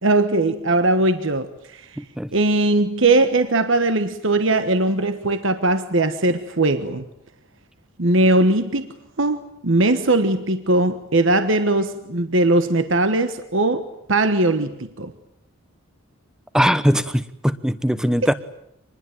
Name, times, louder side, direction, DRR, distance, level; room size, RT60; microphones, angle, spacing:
voice 1, 0.0-1.9 2.3-7.0 8.0-8.9 9.2-15.1, right 2 dB, 60° right, 1.4 m, -20 dB
voice 2, 2.0-2.3 16.5-18.3, equal, 5° right, 1.0 m, -20 dB
26.5 x 21.0 x 9.3 m
head